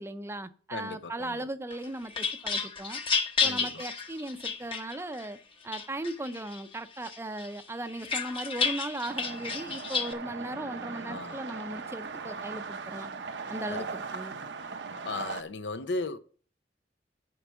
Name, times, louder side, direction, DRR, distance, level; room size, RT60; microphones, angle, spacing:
voice 1, 0.0-3.0 3.4-5.4 5.6-13.1 13.5-14.4, right 1 dB, 15° right, 0.6 m, -37 dB
voice 2, 0.7-1.4 3.4-3.9 11.1-11.4 13.7-13.9 15.0-16.2, left 3 dB, 85° left, 0.8 m, -36 dB
sound 1, 1.7-5.3 5.7-6.6 7.0-10.1, left 5 dB, 30° left, 0.9 m, -31 dB
sound 2, 9.1-15.4, right 4 dB, 85° right, 0.8 m, -39 dB
9.7 x 4.7 x 6.8 m
head